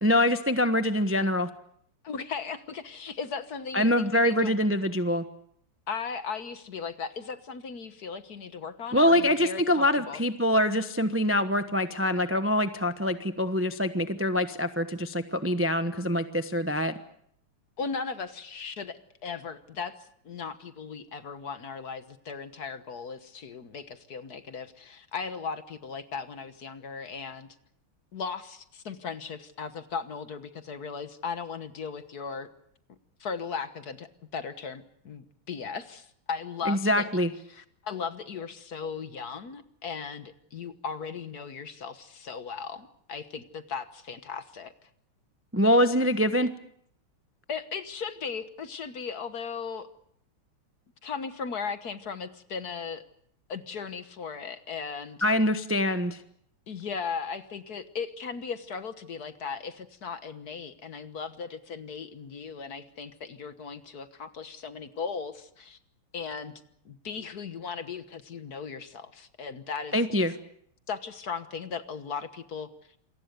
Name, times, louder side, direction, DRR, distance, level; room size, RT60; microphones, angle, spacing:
voice 1, 0.0-1.5 3.7-5.2 8.9-16.9 36.7-37.3 45.5-46.5 55.2-56.2 69.9-70.3, left 1 dB, 15° right, 9 dB, 0.4 m, -24 dB
voice 2, 2.0-4.5 5.9-10.2 17.8-19.9 20.2-27.5 28.1-32.5 33.2-37.1 37.5-44.7 47.5-49.9 51.0-53.0 53.5-55.2 56.7-65.8 66.1-66.5 66.8-69.9 70.9-72.7, left 5 dB, 50° left, 11 dB, 1.6 m, -37 dB
27.5 x 23.0 x 6.8 m, 0.69 s
omnidirectional pair, 2.4 m